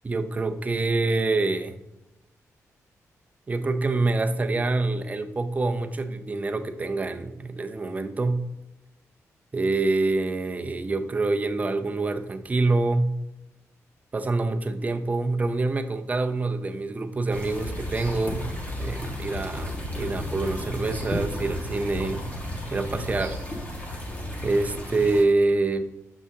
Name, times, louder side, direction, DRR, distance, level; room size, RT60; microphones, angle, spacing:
voice 1, 0.0-1.8 3.5-8.4 9.5-13.1 14.1-18.4 18.8-22.2 22.7-23.4 24.4-25.9, right 3 dB, 25° right, 7 dB, 0.6 m, -26 dB
sound 1, 17.3-25.2, left 1 dB, 25° left, 1.4 m, -33 dB
7.1 x 6.1 x 2.8 m, 0.92 s
wide cardioid pair, 120°, 6 cm